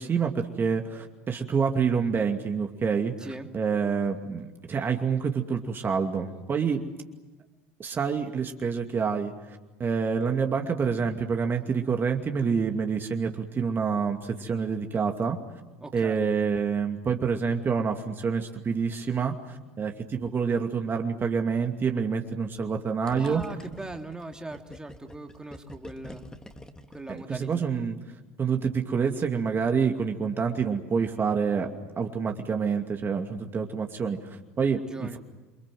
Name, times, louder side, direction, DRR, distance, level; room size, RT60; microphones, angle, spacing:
voice 1, 0.0-6.8 7.8-15.4 15.9-23.4 27.1-28.0 28.4-31.7 32.0-35.2, right 6 dB, 30° right, 4 dB, 2.5 m, -27 dB
voice 2, 15.8-16.2 23.2-26.2 26.9-27.5 34.9-35.2, right 2 dB, 10° right, 4 dB, 3.0 m, -39 dB
Gurgling, 23.1-27.7, left 1 dB, 10° left, 2.7 m, -46 dB
28.5 x 25.5 x 7.8 m, 1.1 s
hypercardioid pair, 70°, 7 cm